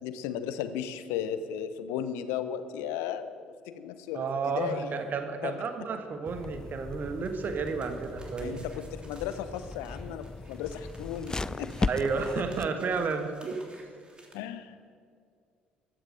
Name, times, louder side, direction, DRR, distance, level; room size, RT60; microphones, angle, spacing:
voice 1, 0.0-3.4 3.7-4.9 5.4-5.5 8.4-11.9 14.3-14.9, left 9 dB, 65° left, 12 dB, 0.9 m, -35 dB
voice 2, 4.1-8.6 11.9-13.6, right 5 dB, 40° right, 7 dB, 1.5 m, -32 dB
sound 1, 6.2-12.7, left 3 dB, 15° left, 0.4 m, -37 dB
sound 2, 7.2-14.3, right 1 dB, 20° right, 3.2 m, -54 dB
15.0 x 12.0 x 6.6 m, 2.2 s
figure-of-eight pair, 50°, 5 cm